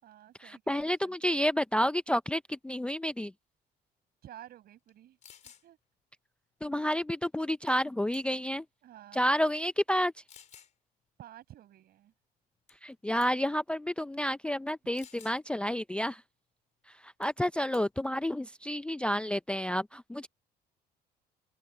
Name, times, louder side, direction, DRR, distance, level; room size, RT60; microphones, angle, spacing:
voice 1, 0.0-1.2 4.2-5.2 5.4-5.8 8.8-9.2 11.2-12.1, right 12 dB, 65° right, 7.1 m, -52 dB
voice 2, 0.7-3.3 6.6-8.6 9.1-10.1 12.8-16.2 17.0-20.3, equal, 5° left, 0.4 m, -30 dB
sound 1, 4.9-5.0 5.2-5.6 7.7-7.9 8.1-8.6 9.3-9.4 10.3-10.7 12.7-12.9 13.2-13.5 14.9-15.4 17.2-17.4 17.7-18.1, left 8 dB, 45° left, 4.2 m, -54 dB
open air
cardioid pair, 110°, 17 cm